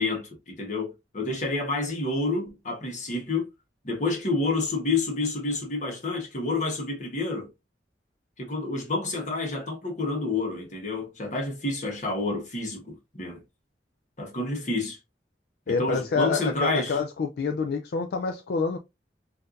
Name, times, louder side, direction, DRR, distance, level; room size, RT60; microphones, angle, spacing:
voice 1, 0.0-3.4 3.8-7.5 8.4-12.8 13.1-13.4 14.2-15.0 15.8-17.0, left 3 dB, 45° left, 1.2 m, -29 dB
voice 2, 15.7-18.8, left 4 dB, 65° left, 0.4 m, -27 dB
4.3 x 2.7 x 2.4 m
head